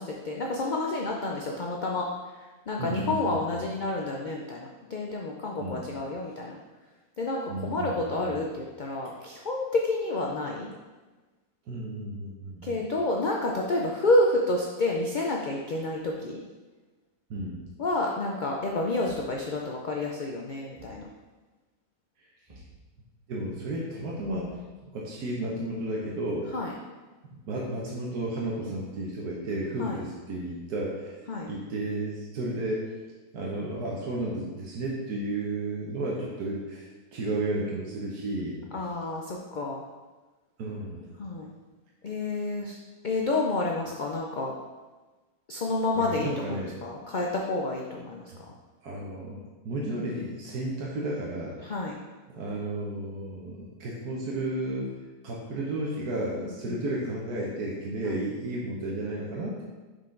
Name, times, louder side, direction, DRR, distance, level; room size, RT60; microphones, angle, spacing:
voice 1, 0.0-2.1 2.3-6.6 7.2-10.7 12.6-16.4 17.8-21.1 26.5-26.7 29.8-30.0 31.3-31.5 38.7-39.8 41.2-41.5 42.0-44.5 45.5-48.2 51.6-52.0 56.4-56.8 58.0-58.2, left 2 dB, 85° left, -1 dB, 0.4 m, -29 dB
voice 2, 2.8-3.7 5.6-5.9 7.5-8.4 11.7-12.8 17.3-17.6 23.3-24.5 24.8-26.5 27.5-31.2 31.5-32.9 33.3-38.6 40.6-41.1 45.9-46.8 48.8-51.5 52.4-54.9 55.2-59.6, right 1 dB, 85° right, -3 dB, 1.4 m, -33 dB
Thump thud, 17.3-17.8 19.0-19.4 20.7-21.1 22.5-22.8 24.2-24.8, right 1 dB, 25° right, 1.6 m, -51 dB
5.8 x 4.9 x 3.8 m, 1.2 s
omnidirectional pair, 1.6 m